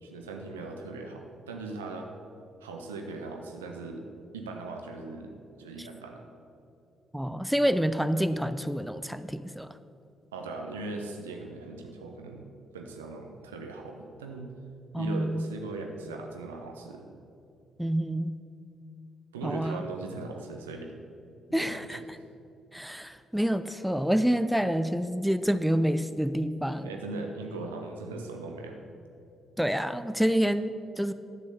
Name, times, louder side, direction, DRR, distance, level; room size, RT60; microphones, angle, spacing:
voice 1, 0.0-2.1 2.6-4.1 4.3-6.2 10.3-14.5 15.0-17.1 19.3-20.9 21.5-22.0 26.8-28.8, right 3 dB, 75° right, 3 dB, 0.8 m, -39 dB
voice 2, 7.1-9.7 14.9-15.4 17.8-18.4 19.4-19.8 21.5-22.0 22.7-26.9 29.6-31.1, equal, ahead, 12 dB, 0.5 m, -27 dB
11.0 x 6.3 x 6.8 m, 2.6 s
figure-of-eight pair, 40°, 0 cm